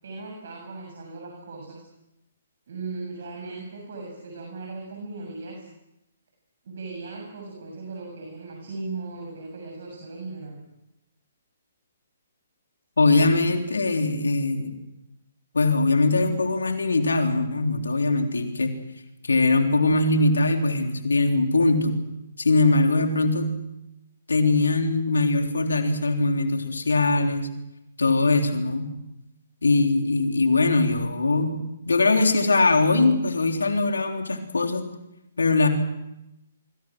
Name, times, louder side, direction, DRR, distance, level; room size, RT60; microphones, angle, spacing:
voice 1, 0.0-1.8 2.7-5.7 6.7-10.6, right 3 dB, 60° right, 1 dB, 7.2 m, -37 dB
voice 2, 13.0-14.7 15.5-18.8 19.2-22.0 22.4-23.5 24.3-27.5 28.0-28.9 29.6-34.9 35.4-35.7, left 3 dB, 75° left, 4 dB, 3.6 m, -21 dB
26.0 x 24.0 x 6.3 m, 0.89 s
figure-of-eight pair, 130°, 0 cm